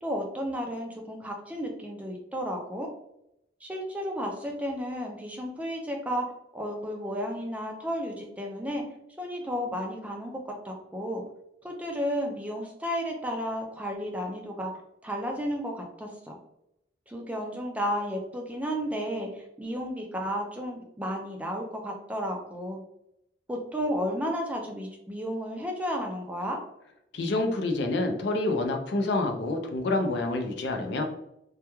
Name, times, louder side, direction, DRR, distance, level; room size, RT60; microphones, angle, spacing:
voice 1, 0.0-2.9 3.6-6.3 6.5-8.8 9.2-11.2 11.6-16.4 17.1-22.8 23.5-26.6, equal, 10° right, 1 dB, 0.3 m, -33 dB
voice 2, 27.1-31.0, left 2 dB, 65° left, 4 dB, 0.4 m, -27 dB
2.2 x 2.2 x 2.9 m, 0.81 s
head